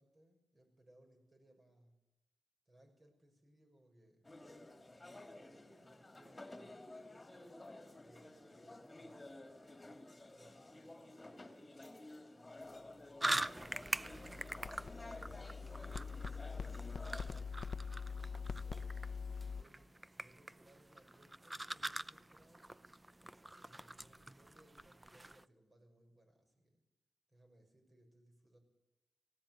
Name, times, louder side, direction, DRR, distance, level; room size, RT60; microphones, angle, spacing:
voice 1, 0.0-1.9 2.7-4.3 4.9-6.9 8.0-11.8 12.3-16.2 16.5-17.6 18.3-19.0 19.6-22.7 23.5-26.8 27.3-28.6, right 1 dB, 35° right, 4 dB, 6.4 m, -67 dB
sound 1, 4.2-17.4, left 2 dB, 20° left, 2.7 m, -53 dB
sound 2, 13.2-25.4, right 1 dB, 15° right, 0.7 m, -44 dB
sound 3, 13.7-19.6, left 5 dB, 65° left, 0.8 m, -44 dB
19.0 x 17.5 x 9.3 m, 0.92 s
wide cardioid pair, 90°, 0 cm